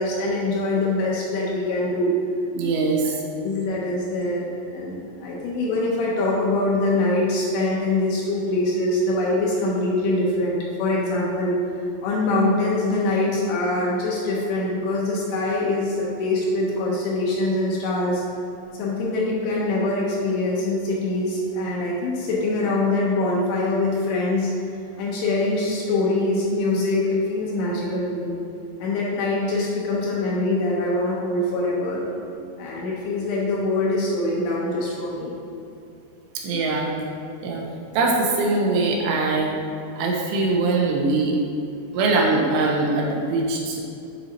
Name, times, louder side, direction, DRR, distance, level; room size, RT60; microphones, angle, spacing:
voice 1, 0.0-2.1 3.4-11.6 12.0-18.2 18.8-24.5 25.0-28.4 28.8-32.0 32.6-35.3, left 2 dB, 75° left, -4 dB, 2.5 m, -24 dB
voice 2, 2.5-3.1 36.4-36.9 37.4-37.6 37.9-39.5 40.0-41.4 41.9-43.8, right 3 dB, 85° right, -1 dB, 2.9 m, -22 dB
8.9 x 4.0 x 2.7 m, 2.6 s
omnidirectional pair, 5.0 m